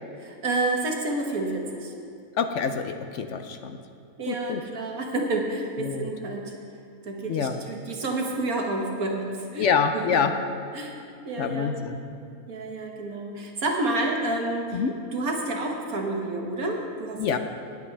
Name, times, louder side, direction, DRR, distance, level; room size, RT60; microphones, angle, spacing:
voice 1, 0.2-1.9 4.2-6.5 7.0-9.7 9.9-10.3 10.7-11.0 11.2-11.7 12.5-14.8 15.1-17.4, right 2 dB, 80° right, 1 dB, 1.8 m, -29 dB
voice 2, 2.4-3.8 4.3-4.6 5.8-6.1 7.3-7.6 9.6-10.3 11.4-12.0 14.7-14.9 17.2-17.4, left 6 dB, 65° left, 7 dB, 0.9 m, -26 dB
19.5 x 8.5 x 3.3 m, 2.6 s
omnidirectional pair, 1.5 m